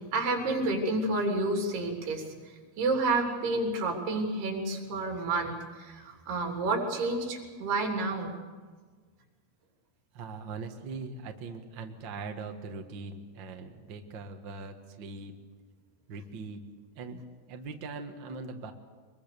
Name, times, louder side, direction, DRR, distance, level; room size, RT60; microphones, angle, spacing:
voice 1, 0.1-8.3, right 2 dB, 85° right, 1 dB, 5.3 m, -30 dB
voice 2, 10.1-15.3 16.1-16.6 16.9-17.2 17.5-18.7, right 4 dB, 55° right, 4 dB, 1.3 m, -41 dB
23.5 x 22.0 x 6.8 m, 1.5 s
omnidirectional pair, 4.5 m